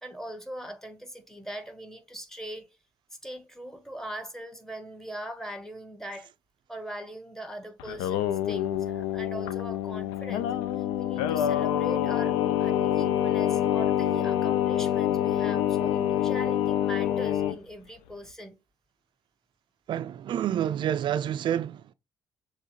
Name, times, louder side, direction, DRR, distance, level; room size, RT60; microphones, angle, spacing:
voice 1, 0.0-2.7 3.2-6.3 6.7-18.5, right 1 dB, 5° left, 1.1 m, -41 dB
Singing, 7.8-17.6, left 11 dB, 65° left, 0.4 m, -26 dB
voice 2, 19.9-21.9, right 10 dB, 45° right, 0.4 m, -28 dB
6.8 x 2.7 x 2.8 m
figure-of-eight pair, 45°, 11 cm